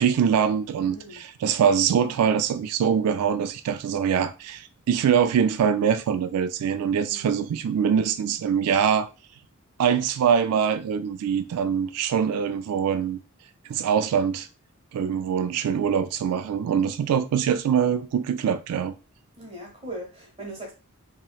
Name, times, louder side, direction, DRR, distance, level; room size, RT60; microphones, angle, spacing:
voice 1, 0.0-9.1 9.8-13.2 13.7-14.5 14.9-18.9, right 7 dB, 90° right, 0.3 m, -23 dB
voice 2, 0.8-1.2 7.0-7.3 19.4-20.7, right 1 dB, 25° right, 1.1 m, -39 dB
3.1 x 2.8 x 2.3 m
head